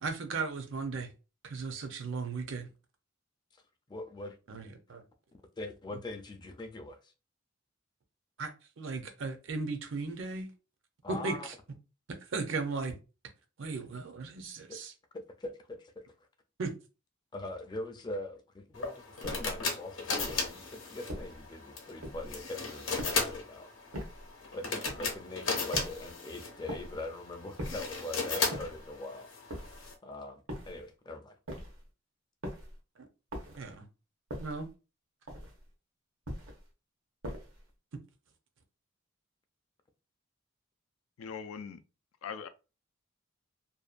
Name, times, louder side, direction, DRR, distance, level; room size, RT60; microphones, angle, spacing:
voice 1, 0.0-1.1 1.4-2.7 4.5-5.0 8.4-10.5 11.1-11.5 12.3-13.0 13.6-14.9 16.6-16.7 33.6-33.9 34.4-34.7, right 4 dB, 65° right, 0.5 m, -36 dB
voice 2, 3.9-4.4 5.6-7.1 11.0-11.5 14.7-14.8 15.1-16.1 17.3-23.7 24.5-29.3 30.0-31.4, left 2 dB, 20° left, 0.4 m, -42 dB
sound 1, 18.7-29.9, left 4 dB, 65° left, 0.7 m, -36 dB
sound 2, 19.2-19.6 20.2-20.5 21.1-21.5 22.0-22.4 23.0-23.4 23.9-24.3 24.8-25.2 25.7-26.1 26.7-27.0 27.6-28.0 28.5-28.9 29.5-29.9 30.5-30.9 31.5-31.9 32.4-32.8 33.3-33.7 34.3-34.7 35.3-35.7 36.2-36.7 37.2-37.7, equal, 85° right, 0.9 m, -42 dB
voice 3, 41.2-41.8 42.2-42.5, left 6 dB, 90° left, 0.4 m, -40 dB
2.7 x 2.1 x 2.4 m
head